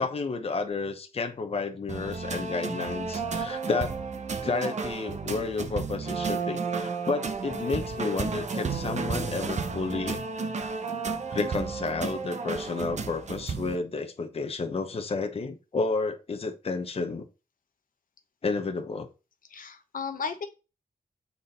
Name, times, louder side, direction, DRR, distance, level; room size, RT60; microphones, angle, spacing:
voice 1, 0.0-4.0 4.4-10.2 11.3-17.3 18.4-19.1, left 4 dB, 40° left, 1.0 m, -31 dB
sound 1, 1.9-13.8, right 4 dB, 55° right, 0.9 m, -32 dB
voice 2, 19.5-20.5, left 6 dB, 70° left, 1.0 m, -35 dB
7.2 x 4.1 x 4.2 m
wide cardioid pair, 165°, 15 cm